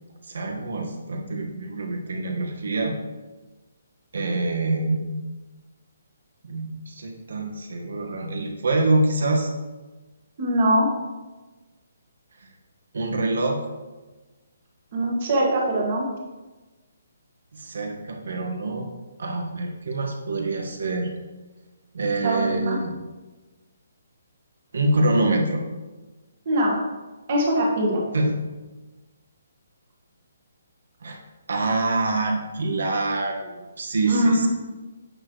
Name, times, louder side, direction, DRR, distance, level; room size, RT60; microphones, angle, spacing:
voice 1, 0.2-3.0 4.1-5.2 6.4-9.5 12.9-13.6 17.5-18.9 19.2-21.1 21.9-22.9 24.7-25.6 28.1-28.3 31.0-31.2 31.5-34.5, right 2 dB, 65° right, 2 dB, 1.4 m, -25 dB
voice 2, 10.4-10.9 14.9-16.0 22.2-22.8 26.4-26.8 27.3-28.0 34.1-34.5, right 1 dB, 30° right, -2 dB, 1.5 m, -22 dB
8.6 x 6.6 x 3.1 m, 1.2 s
hypercardioid pair, 180°, 0 cm